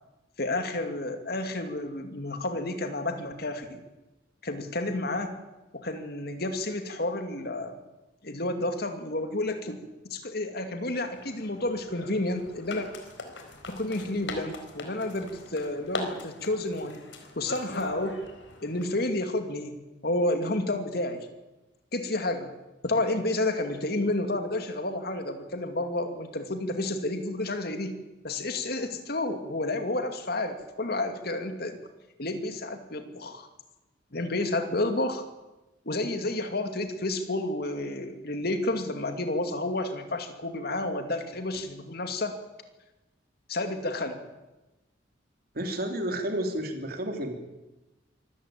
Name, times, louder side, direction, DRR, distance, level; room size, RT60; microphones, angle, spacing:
voice 1, 0.4-3.8 4.4-5.4 5.7-7.7 8.2-12.9 13.7-17.0 17.4-18.2 18.6-19.8 20.0-21.3 21.9-22.5 22.8-28.0 28.2-31.8 32.2-33.5 34.1-35.2 35.8-42.4 43.5-44.2, left 2 dB, 55° left, 7 dB, 2.6 m, -30 dB
sound 1, 11.0-18.8, left 3 dB, 85° left, 4.4 m, -41 dB
voice 2, 45.5-47.3, right 1 dB, 55° right, 4 dB, 3.4 m, -31 dB
25.0 x 14.5 x 8.9 m, 1.0 s
head